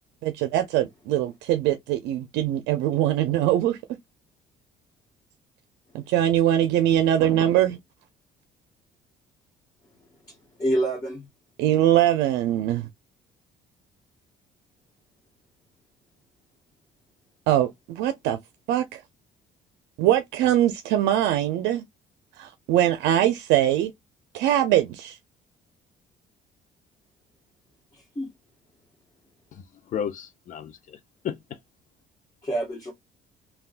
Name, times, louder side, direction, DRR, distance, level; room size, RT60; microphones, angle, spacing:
voice 1, 0.2-3.8 5.9-7.8 11.6-12.9 17.5-18.4 18.7-19.0 20.0-21.9 22.4-23.9 24.3-25.2, right 12 dB, 90° right, 0.5 m, -22 dB
voice 2, 10.2-11.3 27.9-28.3 32.4-32.9, right 1 dB, 20° left, 1.5 m, -28 dB
voice 3, 29.5-31.6, left 8 dB, 50° left, 0.5 m, -34 dB
3.4 x 2.3 x 2.4 m
cardioid pair, 110°, 17 cm